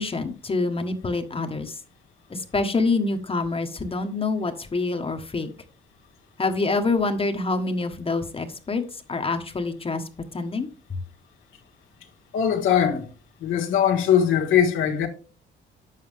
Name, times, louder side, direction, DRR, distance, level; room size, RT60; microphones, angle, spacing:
voice 1, 0.0-1.8 2.3-5.5 6.4-10.0 10.3-11.0, left 3 dB, 30° left, 1.3 m, -26 dB
voice 2, 12.3-13.1 13.4-15.1, left 9 dB, 90° left, 1.7 m, -21 dB
8.6 x 7.4 x 3.5 m
cardioid pair, 90°, 20 cm